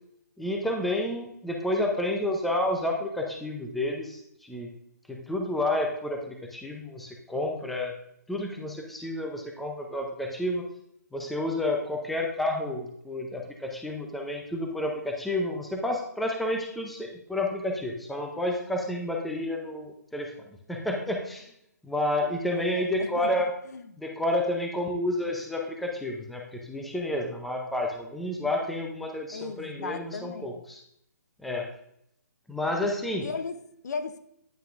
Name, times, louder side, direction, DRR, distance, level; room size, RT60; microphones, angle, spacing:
voice 1, 0.4-4.7 5.1-7.9 8.3-10.6 11.1-20.3 20.7-21.5 21.8-23.5 24.0-30.8 31.4-31.7 32.5-33.3, left 1 dB, ahead, 1 dB, 0.6 m, -30 dB
voice 2, 22.5-23.9 29.3-30.5 33.2-34.2, left 4 dB, 65° left, 10 dB, 0.7 m, -37 dB
9.4 x 5.7 x 2.5 m, 0.74 s
hypercardioid pair, 155°, 10 cm